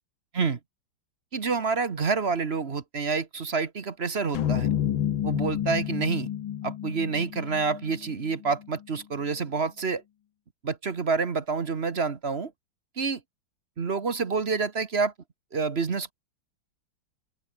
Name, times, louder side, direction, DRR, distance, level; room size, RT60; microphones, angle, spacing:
voice 1, 1.3-4.7 5.2-6.3 6.6-10.0 10.6-12.5 13.0-13.2 13.8-15.1 15.5-16.1, right 4 dB, 35° right, 1.3 m, -28 dB
sound 1, 4.3-8.7, left 10 dB, 80° left, 1.9 m, -30 dB
open air
omnidirectional pair, 2.1 m